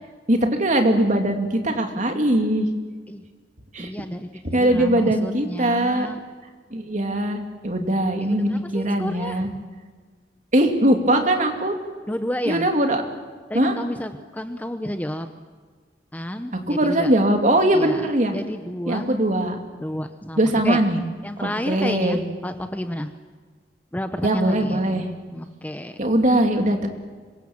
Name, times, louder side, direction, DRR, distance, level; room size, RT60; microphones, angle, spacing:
voice 1, 0.3-2.7 3.7-3.9 4.5-6.1 6.7-7.4 7.6-9.5 10.5-11.7 12.5-13.0 13.5-13.7 16.7-18.3 18.9-19.6 20.4-21.0 21.4-22.2 24.2-25.1 26.0-26.9, right 1 dB, 45° right, 4 dB, 2.7 m, -21 dB
voice 2, 3.8-6.2 8.2-9.5 12.1-12.7 13.5-15.3 16.1-17.1 17.7-19.1 19.8-20.8 21.2-23.1 23.9-26.0, equal, 10° left, 8 dB, 0.8 m, -31 dB
26.0 x 23.0 x 7.4 m, 1.5 s
head